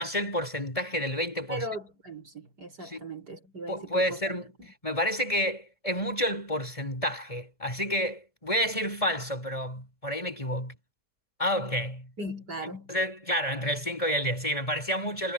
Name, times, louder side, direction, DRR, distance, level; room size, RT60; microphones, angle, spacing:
voice 1, 0.0-1.7 2.8-3.1 3.7-10.7 11.4-12.1 12.6-15.3, equal, 20° left, 5.7 m, -30 dB
voice 2, 1.5-4.2 4.6-4.7 12.2-12.9, right 1 dB, 80° right, 7.0 m, -38 dB
omnidirectional pair, 1.7 m